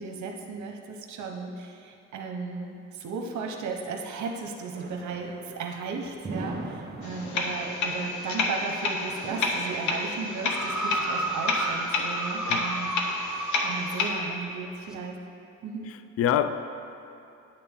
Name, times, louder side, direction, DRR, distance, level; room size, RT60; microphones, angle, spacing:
voice 1, 0.0-15.2 15.6-15.9, right 4 dB, 70° right, 2 dB, 0.9 m, -35 dB
sound 1, 4.7-11.8, right 2 dB, 30° right, 1.2 m, -41 dB
sound 2, 7.0-14.1, left 3 dB, 75° left, 1.0 m, -30 dB
sound 3, 10.4-14.1 14.9-15.0, right 2 dB, ahead, 0.8 m, -32 dB
voice 2, 15.9-16.5, left 10 dB, 50° left, 11 dB, 0.4 m, -26 dB
10.0 x 6.7 x 3.7 m, 2.6 s
cardioid pair, 90°, 30 cm